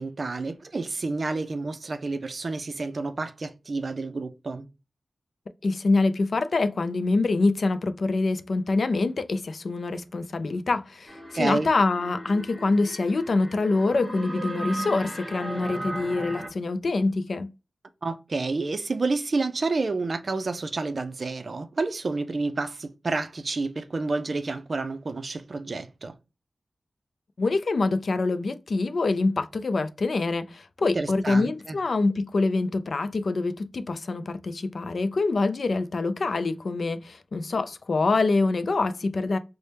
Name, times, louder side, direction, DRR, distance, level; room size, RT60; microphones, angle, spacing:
voice 1, 0.0-4.7 11.3-11.7 18.0-26.1 31.0-31.8, right 3 dB, 55° right, 0.4 m, -29 dB
voice 2, 5.6-17.5 27.4-39.4, left 3 dB, 65° left, 0.3 m, -25 dB
sound 1, 11.1-16.5, right 1 dB, 5° left, 0.9 m, -36 dB
3.3 x 2.1 x 4.1 m
wide cardioid pair, 70°, 0 cm